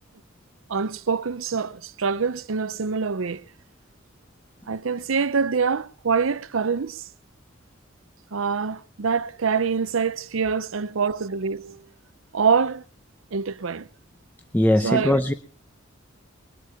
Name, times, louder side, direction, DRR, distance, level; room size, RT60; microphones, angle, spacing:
voice 1, 0.7-3.4 4.7-7.0 8.3-11.8 12.3-12.8 13.3-13.9 14.8-15.3, right 5 dB, 85° right, 0.7 m, -25 dB
voice 2, 14.5-15.3, left 1 dB, 10° left, 0.7 m, -20 dB
21.5 x 8.3 x 5.8 m
head